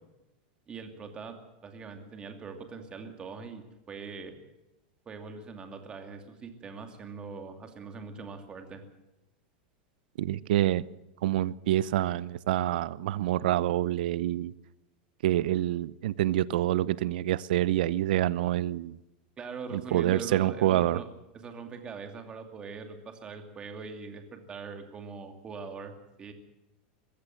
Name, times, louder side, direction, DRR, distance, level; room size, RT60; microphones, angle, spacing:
voice 1, 0.7-4.3 5.1-8.8 19.4-21.1 21.3-26.3, right 5 dB, 20° right, 2.6 m, -42 dB
voice 2, 10.2-10.8 11.2-14.5 15.2-19.0 19.7-21.0, right 13 dB, 75° right, 0.7 m, -27 dB
22.5 x 15.5 x 7.7 m
supercardioid pair, 165°, 5 cm